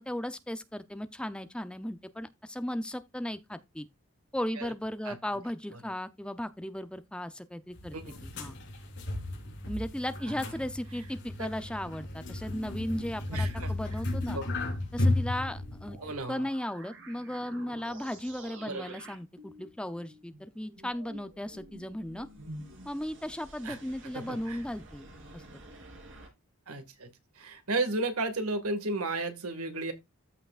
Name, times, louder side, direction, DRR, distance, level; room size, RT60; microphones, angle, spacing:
voice 1, 0.0-3.9 4.3-8.0 8.2-8.6 9.7-14.4 14.9-16.0 16.3-22.3 22.8-25.1 25.3-25.6, left 1 dB, 5° left, 0.5 m, -36 dB
sound 1, 7.7-16.2, left 2 dB, 55° left, 3.8 m, -34 dB
voice 2, 13.3-13.7 14.3-14.4 16.0-16.5 18.6-19.0 23.6-23.8 24.1-24.6 26.7-27.1 27.4-29.9, right 2 dB, 85° right, 1.8 m, -34 dB
sound 2, 15.8-26.3, right 1 dB, 60° right, 3.2 m, -50 dB
14.0 x 5.7 x 2.4 m
head